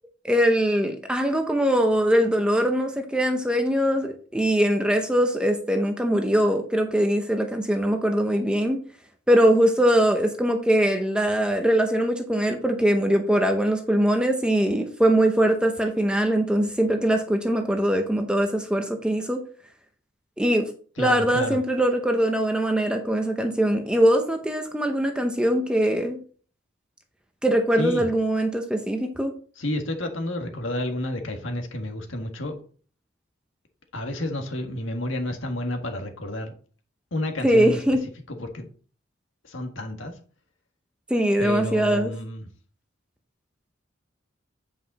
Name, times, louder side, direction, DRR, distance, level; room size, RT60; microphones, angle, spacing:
voice 1, 0.2-8.8 9.3-19.4 20.4-20.7 21.0-26.2 27.4-29.3 37.4-38.0 41.1-42.1, right 1 dB, 5° right, 4 dB, 0.8 m, -22 dB
voice 2, 21.0-21.6 27.8-28.0 29.6-32.6 33.9-36.5 37.1-37.8 38.3-38.7 39.4-40.1 41.4-42.5, left 1 dB, 75° left, 5 dB, 1.7 m, -30 dB
9.1 x 5.4 x 4.2 m, 0.42 s
head